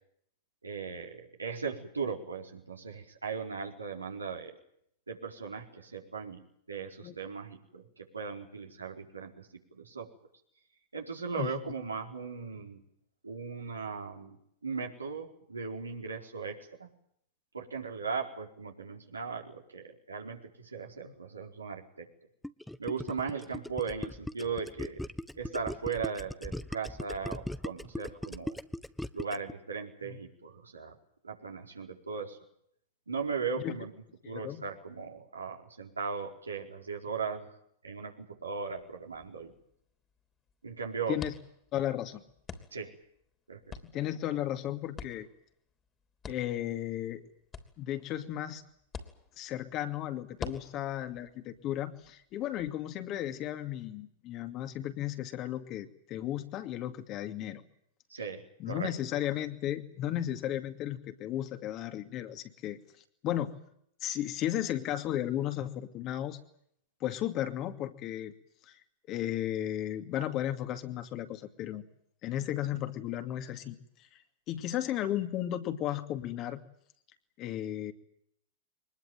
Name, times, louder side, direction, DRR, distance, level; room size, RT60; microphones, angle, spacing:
voice 1, 0.6-4.5 5.1-9.5 9.8-10.1 10.9-12.8 13.2-14.4 14.6-16.9 17.5-22.1 22.8-25.0 25.3-28.6 29.1-30.9 31.2-32.4 33.1-33.9 34.2-37.5 37.8-39.5 40.6-41.2 42.7-42.9 43.5-43.7 58.1-58.9, right 5 dB, 85° right, 1 dB, 4.5 m, -38 dB
Gurgling, 22.4-29.5, left 1 dB, 5° left, 0.9 m, -38 dB
voice 2, 34.2-34.6 41.1-41.3 41.7-42.2 43.8-45.3 46.3-47.2 47.8-48.6 49.4-57.6 58.6-62.8 63.2-63.5 64.0-66.4 67.0-68.3 68.7-68.8 69.1-71.8 72.2-73.8 74.5-76.6 77.4-77.9, left 12 dB, 40° left, 7 dB, 2.4 m, -34 dB
sound 1, 38.5-52.7, left 5 dB, 25° left, 3.2 m, -49 dB
24.0 x 20.5 x 9.3 m, 0.70 s
figure-of-eight pair, 100°, 0 cm